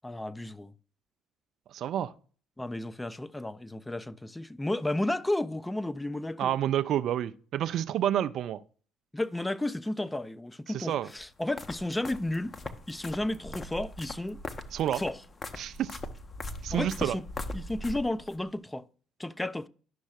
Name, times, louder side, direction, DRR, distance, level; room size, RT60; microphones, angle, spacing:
voice 1, 0.0-0.7 2.6-6.5 9.1-12.6 12.9-14.4 14.9-15.2 16.7-17.2 17.5-18.9 19.2-19.7, left 1 dB, 10° left, 0.5 m, -33 dB
voice 2, 1.7-2.1 6.4-8.6 10.7-11.1 14.7-15.0 15.6-15.9 16.6-17.2, right 11 dB, 55° right, 0.4 m, -29 dB
sound 1, 11.1-18.4, left 2 dB, 30° left, 0.8 m, -40 dB
11.0 x 6.2 x 2.4 m
figure-of-eight pair, 50°, 0 cm